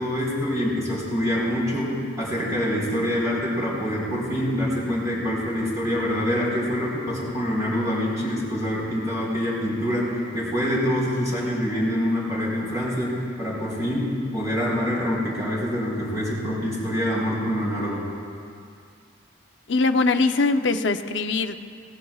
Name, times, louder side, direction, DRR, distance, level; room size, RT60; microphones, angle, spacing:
voice 1, 0.0-18.1, equal, 20° right, -7 dB, 4.3 m, -25 dB
voice 2, 19.7-21.6, left 3 dB, 65° left, 7 dB, 0.7 m, -22 dB
25.5 x 18.0 x 2.4 m, 2.3 s
head